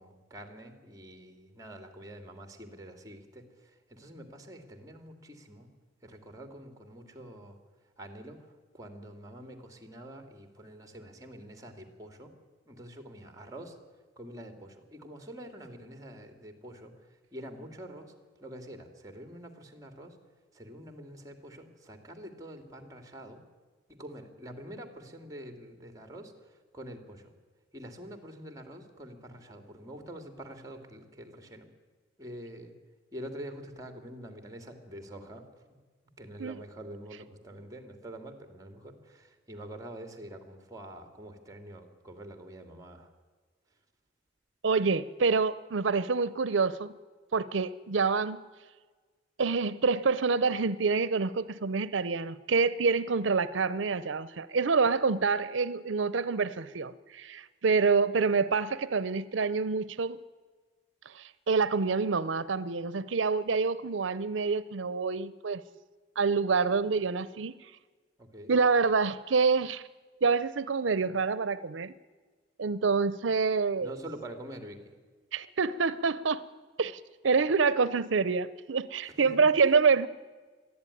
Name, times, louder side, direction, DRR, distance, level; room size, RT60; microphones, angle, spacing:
voice 1, 0.0-5.7 6.0-7.6 8.0-12.3 12.7-13.8 14.2-18.1 18.4-20.2 20.5-23.4 23.9-27.3 27.7-31.7 32.2-32.7 33.1-35.8 36.2-43.1 68.2-68.5 73.8-75.0 79.0-79.3, right 1 dB, 20° right, 7 dB, 2.7 m, -46 dB
voice 2, 44.6-46.9 47.3-48.4 49.4-60.2 61.1-65.6 66.2-67.7 68.5-69.8 70.2-71.9 72.6-73.9 75.3-76.4 76.8-80.1, right 4 dB, 90° right, 17 dB, 0.6 m, -27 dB
22.0 x 14.0 x 10.0 m, 1.4 s
head